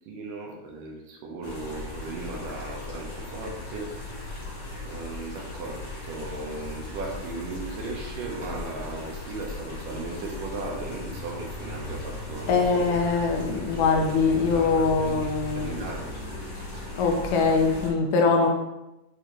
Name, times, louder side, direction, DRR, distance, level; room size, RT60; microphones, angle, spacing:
voice 1, 0.1-3.9 4.9-5.8 6.1-13.5 13.9-14.1 14.5-15.3 15.6-16.0, right 2 dB, 75° right, 0 dB, 2.4 m, -37 dB
sound 1, 1.4-17.9, left 1 dB, 45° left, 1.5 m, -37 dB
voice 2, 12.5-16.0 17.0-18.5, left 4 dB, 75° left, 2 dB, 2.3 m, -23 dB
8.2 x 3.8 x 3.0 m, 0.97 s
omnidirectional pair, 4.0 m